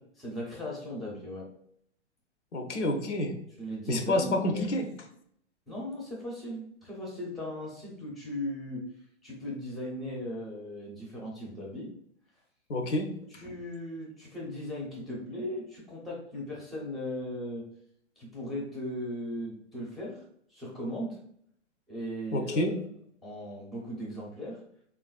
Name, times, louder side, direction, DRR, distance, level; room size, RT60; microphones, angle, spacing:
voice 1, 0.2-1.5 3.6-4.8 5.7-8.9 9.2-11.9 13.3-17.7 18.2-20.2 20.5-21.2 21.9-22.8 23.2-24.6, equal, ahead, -4 dB, 0.5 m, -38 dB
voice 2, 2.5-3.4 3.9-4.9 12.7-13.2 22.3-22.8, left 1 dB, 80° left, 4 dB, 0.7 m, -28 dB
3.4 x 2.4 x 2.3 m, 0.67 s
hypercardioid pair, 120°, 35 cm